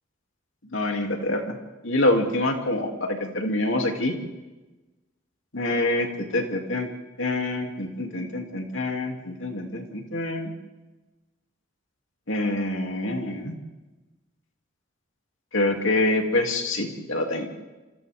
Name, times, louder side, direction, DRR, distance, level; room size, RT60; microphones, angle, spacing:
voice 1, 0.7-1.6 1.8-4.1 5.5-6.1 6.3-6.9 7.2-10.5 12.3-13.5 15.5-17.5, left 2 dB, 85° left, 2 dB, 2.9 m, -26 dB
27.5 x 27.5 x 3.7 m, 1.1 s
head